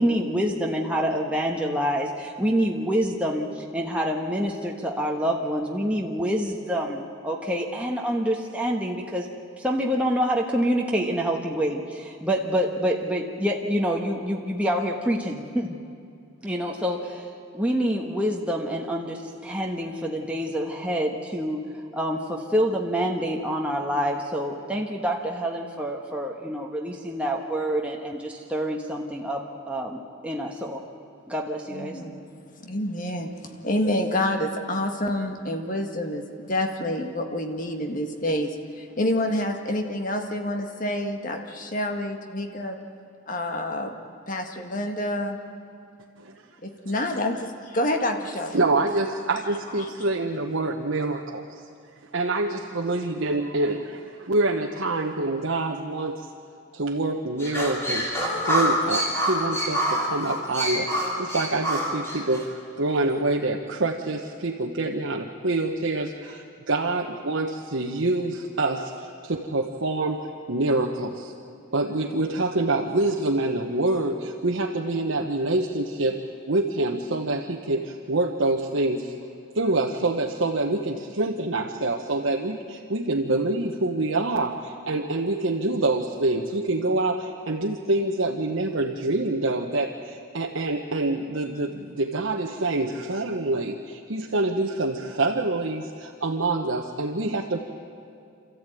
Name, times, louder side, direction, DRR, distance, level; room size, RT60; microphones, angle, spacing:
voice 1, 0.0-9.3 9.6-15.8 16.4-17.3 17.5-30.8 31.3-32.0, equal, 5° right, -1 dB, 1.3 m, -27 dB
voice 2, 31.7-32.2 32.5-42.8 43.3-43.9 44.3-45.4 46.6-48.6 49.8-49.9, left 1 dB, 40° left, 4 dB, 1.7 m, -28 dB
voice 3, 48.5-51.5 52.1-56.3 56.7-71.3 71.7-79.1 79.5-97.6, right 2 dB, 70° right, 0 dB, 1.2 m, -26 dB
sound 1, 57.4-62.5, equal, 10° left, 3.5 m, -26 dB
27.5 x 14.0 x 9.2 m, 2.4 s
head